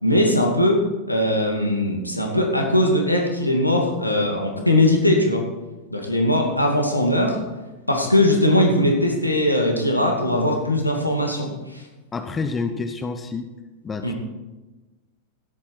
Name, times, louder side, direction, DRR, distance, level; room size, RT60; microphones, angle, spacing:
voice 1, 0.0-0.8 1.1-5.4 5.9-7.4 7.9-11.8 14.0-14.1, left 1 dB, 85° left, 1 dB, 2.4 m, -20 dB
voice 2, 12.1-13.5 13.8-14.1, left 4 dB, 20° left, 9 dB, 1.0 m, -28 dB
17.0 x 8.8 x 4.7 m, 1.1 s
figure-of-eight pair, 90°, 0 cm